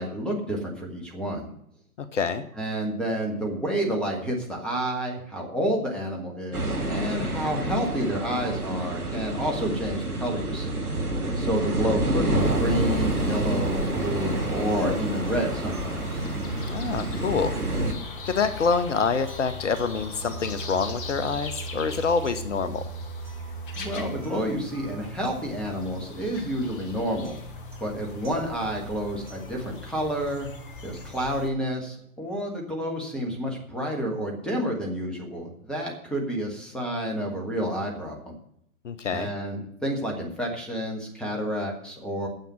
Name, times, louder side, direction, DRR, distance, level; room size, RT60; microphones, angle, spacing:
voice 1, 0.0-1.5 2.6-10.8 11.4-16.2 23.8-27.4 27.8-30.5 30.8-38.4 39.1-42.3, equal, ahead, 0 dB, 1.4 m, -29 dB
voice 2, 2.0-2.4 16.7-17.6 17.9-22.9 38.8-39.3, left 5 dB, 55° left, 11 dB, 0.9 m, -26 dB
sound 1, 6.5-17.9, right 1 dB, 85° right, 1.7 m, -28 dB
sound 2, 12.4-31.5, left 4 dB, 35° left, 1.3 m, -41 dB
sound 3, 15.3-31.3, right 3 dB, 70° right, 2.3 m, -41 dB
9.3 x 7.2 x 8.9 m, 0.74 s
figure-of-eight pair, 125°, 44 cm